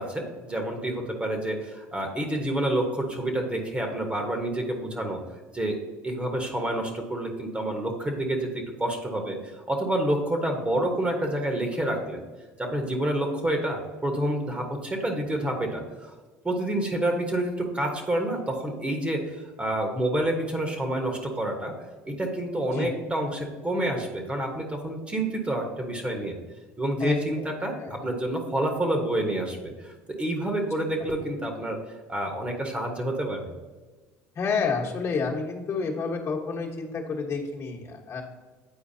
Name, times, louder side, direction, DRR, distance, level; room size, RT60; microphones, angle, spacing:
voice 1, 0.0-5.2 5.5-5.8 6.0-9.4 9.7-12.2 12.6-16.1 16.4-21.7 22.1-26.4 26.8-31.8 32.1-33.5, right 1 dB, 15° right, 3 dB, 1.2 m, -28 dB
voice 2, 27.0-27.5 27.7-28.0 34.3-38.2, left 4 dB, 40° left, -1 dB, 1.3 m, -29 dB
8.9 x 4.5 x 2.8 m, 1.3 s
hypercardioid pair, 80°, 7 cm